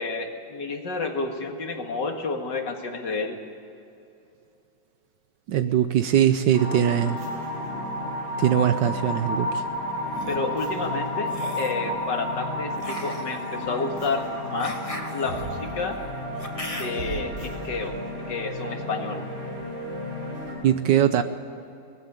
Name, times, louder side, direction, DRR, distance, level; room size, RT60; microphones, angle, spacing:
voice 1, 0.0-3.4 10.3-14.8 15.1-16.0 16.8-19.2, left 3 dB, 65° left, 4 dB, 2.5 m, -30 dB
voice 2, 5.5-7.2 8.4-9.6 20.6-21.2, right 10 dB, 70° right, 10 dB, 1.4 m, -21 dB
sound 1, 6.5-20.5, left 1 dB, 85° right, 6.5 m, -32 dB
sound 2, 9.9-10.4 11.2-11.8 12.8-17.2, left 1 dB, 20° left, 1.7 m, -39 dB
19.5 x 15.5 x 9.8 m, 2.7 s
omnidirectional pair, 2.1 m